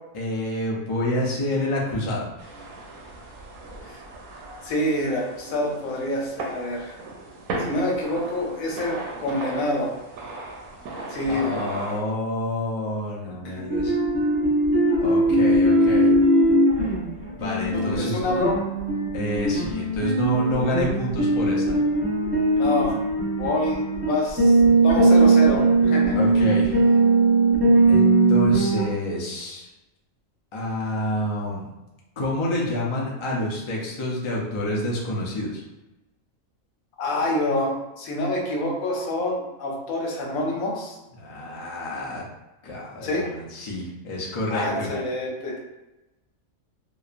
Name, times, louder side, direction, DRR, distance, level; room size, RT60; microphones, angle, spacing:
voice 1, 0.1-2.3 11.3-14.0 15.0-16.1 17.3-18.3 19.1-21.8 26.2-27.0 27.9-29.7 30.5-31.7 32.2-35.6 41.2-42.2 42.6-44.9, left 1 dB, 55° left, -4 dB, 0.3 m, -28 dB
sound 1, 2.4-12.0, right 2 dB, 90° right, 1.0 m, -37 dB
voice 2, 4.6-7.0 7.6-9.9 11.1-11.6 13.4-13.7 17.7-18.6 22.6-22.9 23.4-26.2 37.0-41.0 43.0-43.3 44.5-45.6, left 1 dB, 90° left, -1 dB, 1.1 m, -27 dB
sound 2, 13.7-28.8, right 2 dB, 10° right, 0.5 m, -20 dB
2.9 x 2.1 x 2.4 m, 1.0 s
omnidirectional pair, 1.4 m